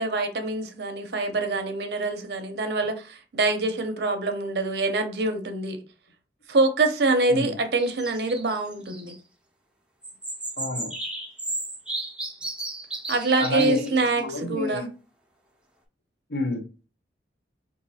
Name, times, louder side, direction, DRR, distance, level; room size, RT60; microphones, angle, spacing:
voice 1, 0.0-5.8 6.5-9.1 13.1-14.9, right 3 dB, 65° right, 0.6 m, -25 dB
sound 1, 7.8-9.2 10.0-14.2, right 2 dB, 5° right, 0.5 m, -34 dB
voice 2, 10.6-10.9 13.4-14.9 16.3-16.7, left 2 dB, 60° left, 0.7 m, -29 dB
4.0 x 2.5 x 2.7 m
head